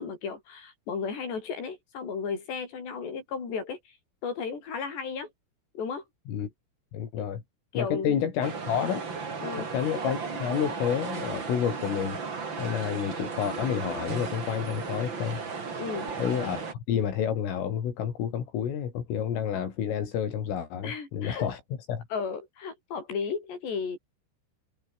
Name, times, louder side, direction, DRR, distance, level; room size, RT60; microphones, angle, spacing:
voice 1, 0.0-4.0 4.2-5.3 5.8-6.0 7.7-8.2 9.4-9.7 15.8-16.1 20.8-21.5 22.1-24.0, left 5 dB, 60° left, 8.6 m, -34 dB
voice 2, 6.9-7.4 7.8-9.0 9.6-12.2 12.6-15.4 16.2-16.6 16.9-21.6 21.9-22.1, left 8 dB, 85° left, 6.3 m, -29 dB
sound 1, 8.4-16.7, right 5 dB, 30° right, 2.8 m, -35 dB
omnidirectional pair, 5.7 m